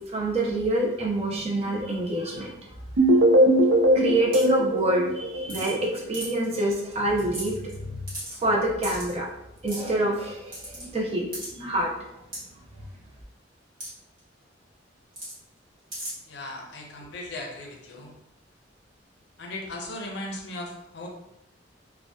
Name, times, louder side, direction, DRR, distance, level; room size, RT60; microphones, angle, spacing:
voice 1, 0.1-2.5 3.9-8.0 8.4-9.3 9.6-11.3 11.5-12.1, right 1 dB, 35° right, -2 dB, 0.5 m, -26 dB
sound 1, 3.0-5.9, right 1 dB, 90° right, 0.5 m, -20 dB
sound 2, 4.3-4.6 5.5-5.8 6.1-6.5 6.9-7.0 7.2-7.7 8.1-8.4 8.8-9.1 9.7-9.9 10.5-10.8 11.3-11.5 12.3-12.4 13.8-13.9 14.2-14.3 15.1-15.3 15.9-16.1, right 1 dB, 50° right, 1.2 m, -36 dB
voice 2, 16.3-18.1 19.4-21.1, left 1 dB, 65° left, 0 dB, 0.5 m, -37 dB
2.6 x 2.1 x 2.2 m, 0.86 s
head